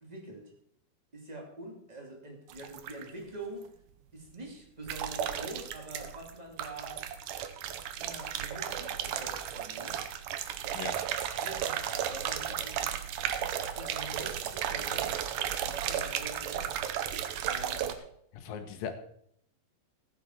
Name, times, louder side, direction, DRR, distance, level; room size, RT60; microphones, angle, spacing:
voice 1, 0.0-0.5 1.1-3.7 4.1-7.0 8.0-10.0 10.8-10.9 11.4-13.1 13.7-15.3 15.6-16.7 17.5-18.0, right 2 dB, 15° right, 1 dB, 1.4 m, -45 dB
sound 1, 2.5-3.1 4.9-6.3 6.6-17.9, right 10 dB, 75° right, 2.0 m, -34 dB
voice 2, 18.3-19.0, left 7 dB, 70° left, 7 dB, 2.7 m, -39 dB
15.0 x 9.7 x 4.4 m, 0.70 s
omnidirectional pair, 4.7 m